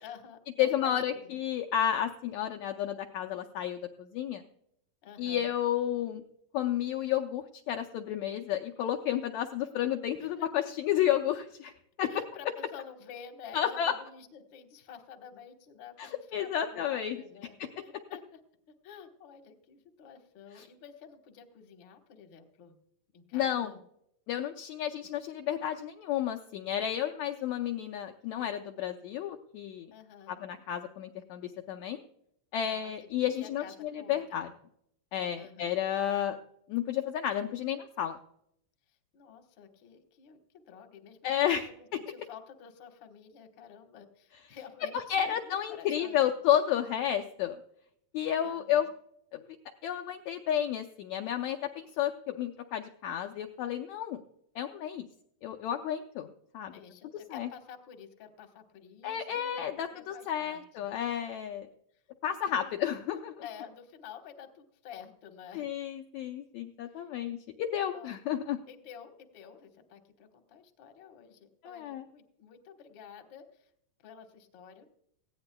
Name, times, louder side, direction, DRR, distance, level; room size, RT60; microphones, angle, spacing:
voice 1, 0.0-1.4 5.0-5.5 10.2-10.7 12.1-18.4 18.8-22.7 23.1-23.8 29.8-30.4 32.6-34.5 35.4-35.8 39.1-41.3 41.7-46.2 48.4-48.9 56.7-59.6 59.9-60.6 61.9-62.0 62.5-62.7 63.4-65.7 66.9-67.0 67.9-68.1 68.7-73.7 74.0-74.9, left 8 dB, 50° left, 5 dB, 1.5 m, -50 dB
voice 2, 0.6-4.4 5.2-6.2 6.5-11.7 12.0-12.1 13.5-14.0 16.0-17.2 17.6-17.7 20.6-20.7 23.3-23.7 24.3-29.9 30.3-32.0 32.5-34.5 35.1-36.4 36.7-38.2 41.2-41.7 44.9-47.6 48.1-48.9 49.3-49.4 49.8-54.2 54.6-55.1 55.4-56.3 56.5-56.7 57.3-57.5 59.0-61.7 62.2-63.3 65.5-68.6 71.6-72.0, left 10 dB, 75° left, 4 dB, 1.7 m, -31 dB
18.5 x 15.5 x 2.2 m, 0.73 s
omnidirectional pair, 3.7 m